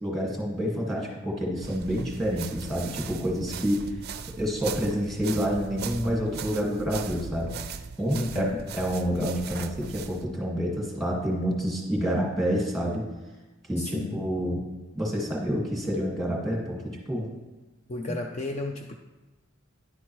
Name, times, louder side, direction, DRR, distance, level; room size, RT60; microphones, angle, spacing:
voice 1, 0.0-4.0 4.4-13.1 13.7-14.6 15.0-17.3 18.1-18.2, equal, ahead, -2 dB, 1.8 m, -28 dB
sound 1, 1.6-10.3, right 6 dB, 50° right, 0.4 m, -39 dB
voice 2, 8.1-8.7 13.8-14.3 17.9-19.0, left 2 dB, 35° left, 4 dB, 0.4 m, -33 dB
10.5 x 8.1 x 3.1 m, 1.2 s
head